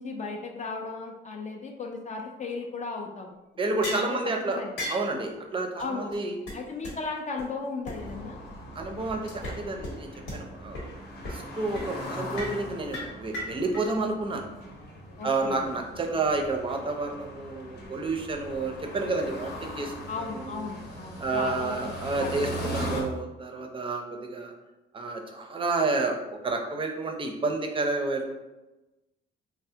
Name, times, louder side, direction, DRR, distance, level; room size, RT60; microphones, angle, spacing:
voice 1, 0.0-3.3 3.7-4.2 4.6-4.7 5.8-6.1 6.5-8.4 15.2-15.6 20.1-22.7, left 4 dB, 35° left, 2 dB, 0.4 m, -36 dB
voice 2, 3.6-6.4 8.7-10.9 11.3-14.5 15.2-20.7 21.2-24.5 24.9-28.3, right 3 dB, 25° right, 3 dB, 0.5 m, -30 dB
sound 1, 3.8-4.1 4.8-5.1 5.8-5.9 6.1-6.2 6.5-6.6 6.8-6.9 7.4-7.5 7.9-8.0 9.3-9.6 9.8-9.9 10.3-10.4 10.7-10.8 11.2-11.5 11.7-11.9 12.4-12.6 12.9-13.8, left 1 dB, 85° left, 1.2 m, -35 dB
sound 2, 7.9-23.0, equal, 60° left, 0.9 m, -40 dB
3.2 x 2.0 x 2.7 m, 1.1 s
cardioid pair, 90°, 20 cm